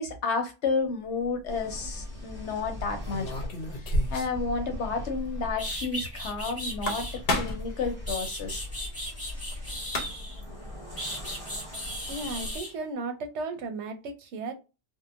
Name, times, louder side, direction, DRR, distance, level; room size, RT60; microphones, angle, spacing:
voice 1, 0.0-3.3 3.7-7.1 7.3-8.6, left 4 dB, 90° left, 1.1 m, -31 dB
sound 1, 1.2-1.5 3.0-4.4 4.7-4.8 5.1-5.2 6.6-7.8 9.5-9.6 9.8-10.4, left 1 dB, 65° left, 0.8 m, -30 dB
sound 2, 1.5-12.6, left 1 dB, 15° right, 1.2 m, -40 dB
sound 3, 5.2-5.3 5.6-7.2 7.8-10.4 11.0-12.7, equal, 15° left, 1.0 m, -36 dB
voice 2, 12.1-14.5, right 3 dB, 85° right, 0.9 m, -35 dB
2.8 x 2.1 x 2.3 m
omnidirectional pair, 1.1 m